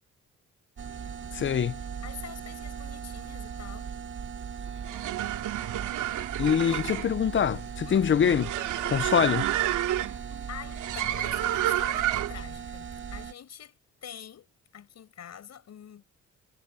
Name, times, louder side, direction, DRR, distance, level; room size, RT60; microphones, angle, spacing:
sound 1, 0.8-13.3, right 7 dB, 40° right, 1.3 m, -39 dB
voice 1, 1.3-1.7 6.4-8.5 8.8-9.5, left 8 dB, 40° left, 0.7 m, -24 dB
voice 2, 2.0-3.9 7.9-8.1 10.5-16.0, left 9 dB, 60° left, 5.7 m, -45 dB
sound 2, 4.7-12.5, right 13 dB, 80° right, 2.4 m, -30 dB
cardioid pair, 90°, 30 cm